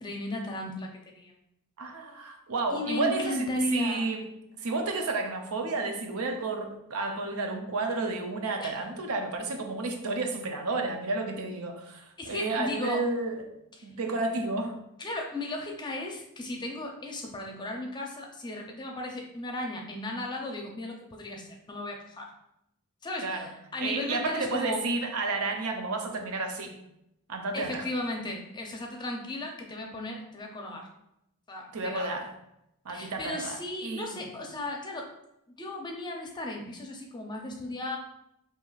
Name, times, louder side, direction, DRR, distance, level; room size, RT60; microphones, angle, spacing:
voice 1, 0.0-1.3 2.7-4.0 8.6-8.8 12.2-13.0 13.8-13.9 15.0-22.3 23.0-24.8 27.5-30.9 31.5-32.2 32.9-35.1 35.6-38.0, left 1 dB, 20° left, 1 dB, 0.6 m, -35 dB
voice 2, 1.8-4.3 4.6-13.4 13.8-14.8 23.2-23.5 23.8-26.8 27.3-27.8 31.7-32.3 32.8-34.3, right 3 dB, 80° right, 3 dB, 0.6 m, -31 dB
5.5 x 2.8 x 2.4 m, 0.82 s
head